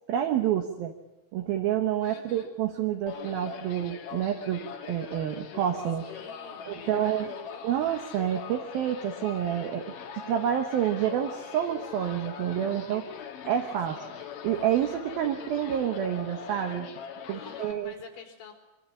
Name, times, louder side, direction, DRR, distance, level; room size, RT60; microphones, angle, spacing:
voice 1, 0.1-0.9 1.3-4.6 4.9-6.0 6.7-7.3 7.6-9.9 10.1-13.1 13.4-14.0 14.4-16.9 17.3-18.0, right 10 dB, 65° right, 4 dB, 2.8 m, -28 dB
voice 2, 2.0-2.5 6.0-7.7 13.9-14.2 17.3-18.5, left 7 dB, 80° left, 2 dB, 6.5 m, -48 dB
sound 1, 3.1-17.7, left 7 dB, 55° left, 2.9 m, -42 dB
25.0 x 24.0 x 8.6 m, 0.94 s
omnidirectional pair, 5.2 m